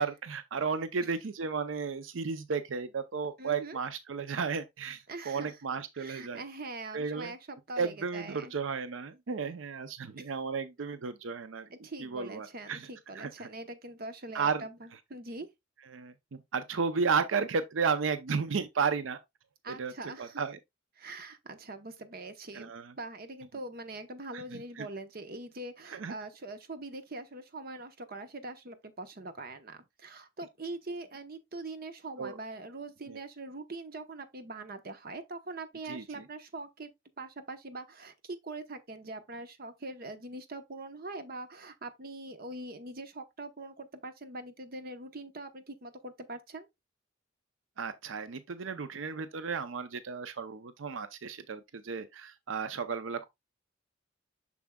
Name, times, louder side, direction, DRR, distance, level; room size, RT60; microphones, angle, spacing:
voice 1, 0.0-6.4 6.9-7.3 7.8-11.7 12.0-12.9 13.2-13.3 14.3-14.6 15.9-19.2 19.8-19.9 20.2-20.6 22.5-22.9 24.3-24.9 25.9-26.1 32.2-32.3 35.9-36.2 47.8-53.3, right 5 dB, 85° right, 0.6 m, -33 dB
voice 2, 3.4-3.8 5.1-5.6 5.9-8.5 10.2-10.3 11.7-15.5 19.6-20.4 21.0-22.7 23.0-36.9 37.2-46.7, right 2 dB, 50° right, 0.9 m, -43 dB
7.0 x 6.1 x 2.3 m
head